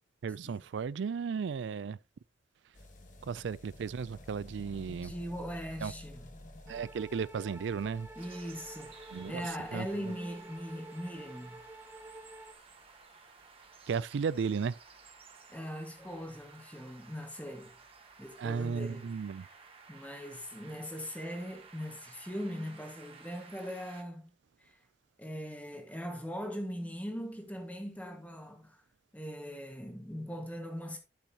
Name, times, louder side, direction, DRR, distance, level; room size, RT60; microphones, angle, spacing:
voice 1, 0.2-2.0 3.2-5.1 5.8-5.9 6.7-8.1 9.1-9.4 9.7-10.2 13.9-14.8 18.4-19.5, right 6 dB, 75° right, 0.4 m, -35 dB
sound 1, 2.7-19.5 19.8-19.9 20.1-20.2 20.4-20.5 20.7-20.8 21.5-21.6, left 1 dB, 45° left, 1.5 m, -55 dB
voice 2, 4.9-6.3 8.1-11.6 15.5-17.8 18.2-19.1 19.9-24.3 24.6-24.7 25.2-28.8 29.1-31.0, equal, 10° left, 1.6 m, -40 dB
sound 2, 6.7-12.5, right 1 dB, 10° right, 0.9 m, -49 dB
sound 3, 8.2-24.0, right 5 dB, 30° right, 1.4 m, -55 dB
11.5 x 6.3 x 2.9 m
head